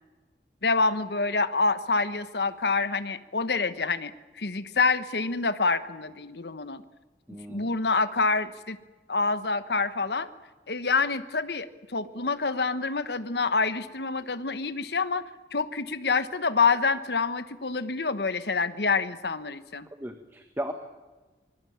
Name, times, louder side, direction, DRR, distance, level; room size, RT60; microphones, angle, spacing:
voice 1, 0.6-4.1 4.4-6.8 7.5-8.8 9.1-10.3 10.7-15.2 15.5-19.9, left 4 dB, 70° left, 13 dB, 1.2 m, -27 dB
voice 2, 7.3-7.7 19.9-20.7, right 1 dB, 15° right, 6 dB, 1.4 m, -36 dB
24.0 x 20.5 x 8.7 m, 1.2 s
head